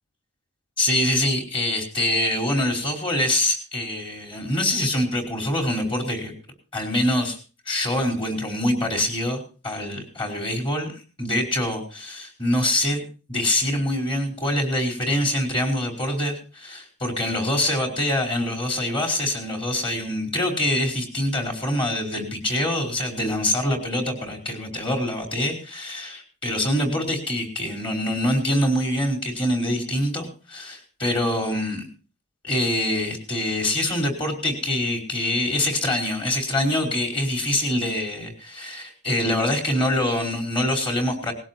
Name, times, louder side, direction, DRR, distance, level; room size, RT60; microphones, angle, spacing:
voice 1, 0.8-6.3 6.7-7.4 7.7-13.0 13.3-31.8 32.4-41.3, left 1 dB, 25° left, 2 dB, 4.7 m, -25 dB
19.5 x 16.5 x 2.9 m, 0.35 s
head